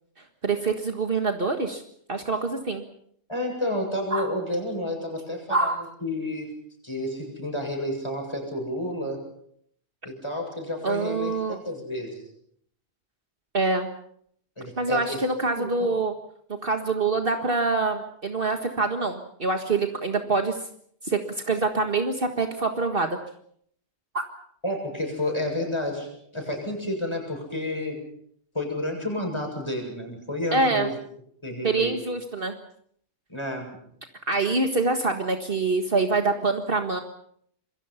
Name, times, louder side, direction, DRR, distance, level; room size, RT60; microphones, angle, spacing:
voice 1, 0.4-1.8 2.1-2.8 4.1-4.3 5.5-5.8 10.8-11.6 13.5-13.9 14.8-16.1 16.6-20.6 21.0-21.2 21.5-23.2 24.1-24.2 30.5-30.9 31.6-32.5 34.3-37.0, right 3 dB, 55° right, 5 dB, 1.9 m, -25 dB
voice 2, 3.3-6.5 6.8-9.2 10.0-12.2 14.6-15.2 15.6-15.7 24.6-28.0 28.5-30.9 31.4-31.9 33.3-33.7, left 1 dB, 25° left, 2 dB, 7.6 m, -30 dB
27.0 x 23.0 x 5.8 m, 0.67 s
omnidirectional pair, 1.1 m